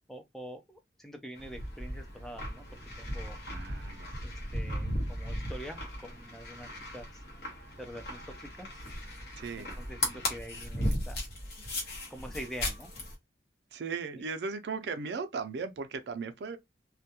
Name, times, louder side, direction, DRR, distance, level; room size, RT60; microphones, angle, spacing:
voice 1, 0.1-2.7 3.0-3.4 4.2-7.2 7.8-8.8 9.6-11.3 12.1-12.9 14.1-14.2, equal, ahead, 0.3 m, -45 dB
sound 1, 1.4-13.1, left 1 dB, 60° left, 0.9 m, -37 dB
voice 2, 3.5-4.2 9.4-9.8 13.7-16.6, right 5 dB, 70° right, 0.4 m, -37 dB
2.2 x 2.1 x 2.8 m
head